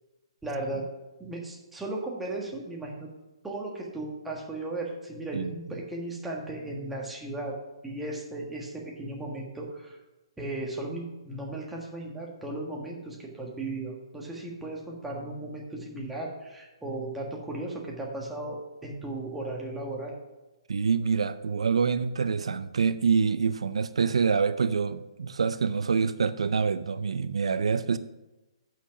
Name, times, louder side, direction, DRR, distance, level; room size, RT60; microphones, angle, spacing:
voice 1, 0.4-0.9 1.2-3.1 3.4-7.6 7.8-10.0 10.4-20.1, right 2 dB, 5° right, -2 dB, 1.5 m, -36 dB
voice 2, 20.7-28.0, right 5 dB, 75° right, 13 dB, 0.4 m, -26 dB
8.4 x 5.9 x 5.8 m, 1.1 s
hypercardioid pair, 145°, 3 cm